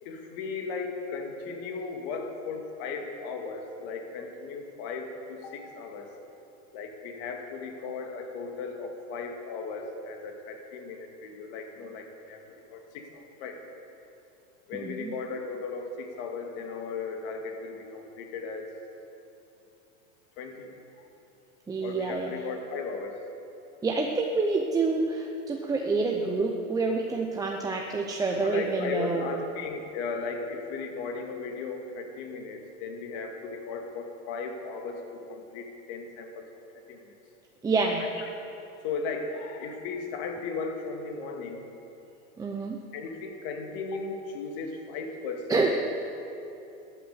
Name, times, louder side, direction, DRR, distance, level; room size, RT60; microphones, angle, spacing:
voice 1, 0.0-6.1 6.7-13.6 14.7-18.7 20.4-20.7 21.8-23.2 28.3-36.5 36.9-37.1 38.0-38.3 38.8-41.7 42.9-45.7, left 4 dB, 50° left, 3 dB, 2.2 m, -36 dB
voice 2, 14.7-15.1 21.7-22.3 23.8-29.4 37.6-38.1 42.4-42.8 45.5-45.7, right 3 dB, 10° right, 1 dB, 0.7 m, -27 dB
13.0 x 8.7 x 8.1 m, 2.8 s
supercardioid pair, 130°, 39 cm